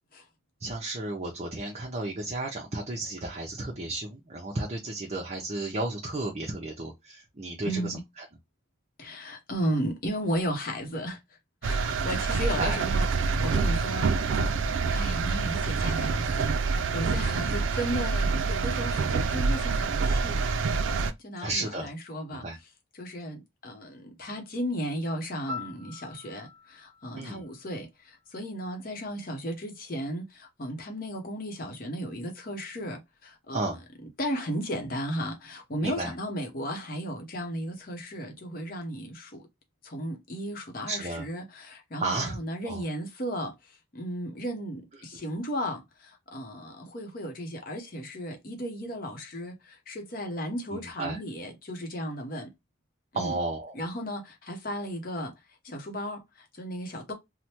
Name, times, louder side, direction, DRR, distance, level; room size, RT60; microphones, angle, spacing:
voice 1, 0.6-8.2 12.6-12.8 17.4-17.6 21.4-21.9 22.3-22.6 27.2-27.4 33.5-33.8 35.8-36.1 40.9-41.3 42.0-42.4 42.7-42.8 45.1-45.2 50.7-51.2 53.1-53.8, right 2 dB, 35° right, 0.6 m, -33 dB
voice 2, 7.6-8.0 9.0-11.2 11.6-14.6 14.9-20.7 21.2-22.4 22.9-33.7 34.2-39.4 39.8-52.5 53.1-53.4 53.7-55.3 55.6-57.1, equal, 45° left, 0.8 m, -35 dB
sound 1, 11.6-21.1, right 4 dB, 75° right, 0.4 m, -27 dB
Piano, 25.5-28.4 36.6-36.8, left 3 dB, 5° left, 0.8 m, -44 dB
3.2 x 2.1 x 2.8 m
head